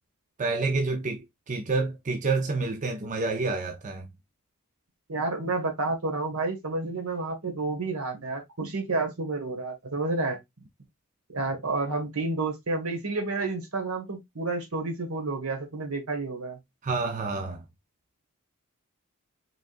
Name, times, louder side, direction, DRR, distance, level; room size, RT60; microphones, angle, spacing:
voice 1, 0.4-4.1 16.8-17.6, right 3 dB, 35° right, 0.6 m, -28 dB
voice 2, 5.1-10.4 11.3-16.6, right 3 dB, 70° right, 1.8 m, -30 dB
5.0 x 3.5 x 2.5 m
head